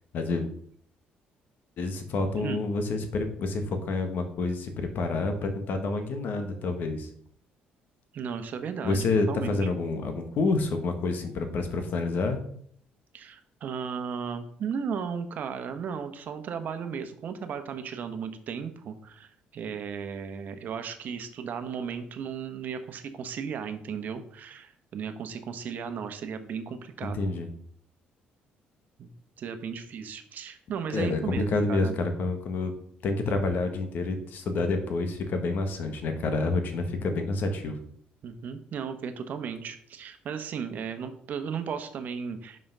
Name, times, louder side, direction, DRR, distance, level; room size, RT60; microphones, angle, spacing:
voice 1, 0.1-0.5 1.8-7.1 8.8-12.4 27.0-27.5 30.9-32.7 33.0-37.8, left 3 dB, 60° left, 6 dB, 1.4 m, -28 dB
voice 2, 8.1-9.7 13.1-27.2 29.0-29.1 29.4-31.9 38.2-42.6, right 6 dB, 55° right, 8 dB, 1.0 m, -35 dB
5.7 x 5.3 x 5.5 m, 0.62 s
cardioid pair, 115°, 4 cm